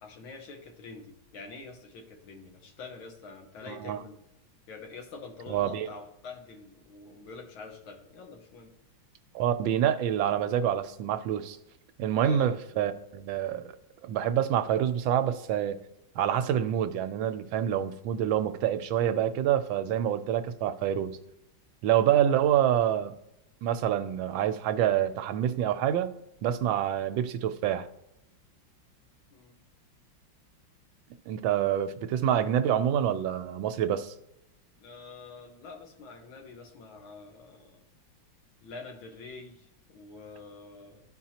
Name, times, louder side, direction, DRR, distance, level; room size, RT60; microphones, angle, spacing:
voice 1, 0.0-4.2 4.7-8.7 12.1-12.5 29.3-29.6 34.8-37.8 38.6-41.0, left 4 dB, 90° left, 3 dB, 2.0 m, -46 dB
voice 2, 3.7-4.0 5.5-5.9 9.3-11.6 12.0-13.7 14.0-15.8 16.2-21.2 21.8-23.1 23.6-26.1 26.4-27.9 31.3-34.1, right 10 dB, 80° right, 10 dB, 1.3 m, -27 dB
13.0 x 4.5 x 2.8 m, 0.84 s
omnidirectional pair, 2.2 m